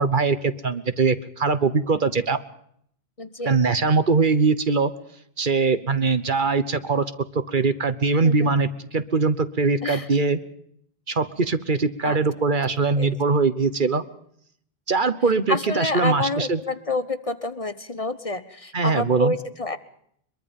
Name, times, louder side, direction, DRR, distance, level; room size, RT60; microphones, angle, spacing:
voice 1, 0.0-2.4 3.4-4.9 5.4-7.0 7.5-10.4 11.1-14.0 14.9-16.6 18.7-19.3, right 4 dB, 55° right, 12 dB, 1.3 m, -22 dB
voice 2, 3.2-3.6 8.2-8.5 9.8-10.1 12.0-12.2 13.0-13.1 15.5-19.8, left 2 dB, 35° left, 13 dB, 1.0 m, -28 dB
23.0 x 22.5 x 5.4 m, 0.68 s
omnidirectional pair, 1.0 m